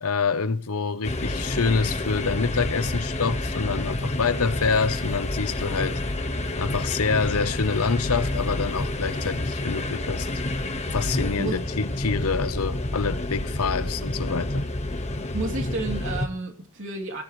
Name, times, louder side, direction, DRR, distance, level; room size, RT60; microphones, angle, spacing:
voice 1, 0.0-6.0 6.6-10.3 10.9-14.7, left 5 dB, 80° left, 0.8 m, -26 dB
sound 1, 1.0-16.3, left 1 dB, 30° left, 1.4 m, -29 dB
voice 2, 15.3-17.2, right 2 dB, 60° right, 3.0 m, -31 dB
19.0 x 13.5 x 3.2 m
head